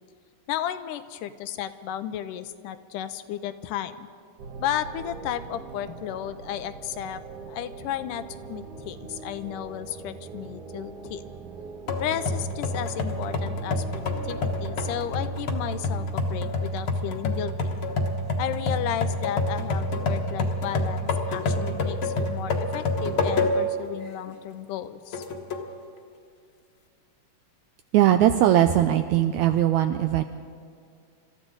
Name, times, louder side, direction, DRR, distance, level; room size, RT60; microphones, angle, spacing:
voice 1, 0.5-4.1 4.6-7.2 7.5-11.4 12.0-17.7 18.4-25.2, left 11 dB, 85° left, 12 dB, 2.2 m, -33 dB
sound 1, 4.4-16.2, right 5 dB, 70° right, 1.5 m, -42 dB
sound 2, 11.9-23.8 24.3-24.4 25.1-25.7, left 2 dB, 55° left, 1.6 m, -28 dB
voice 2, 27.9-30.2, right 12 dB, 85° right, 8 dB, 1.6 m, -20 dB
27.0 x 13.5 x 3.9 m, 2.2 s
omnidirectional pair, 3.8 m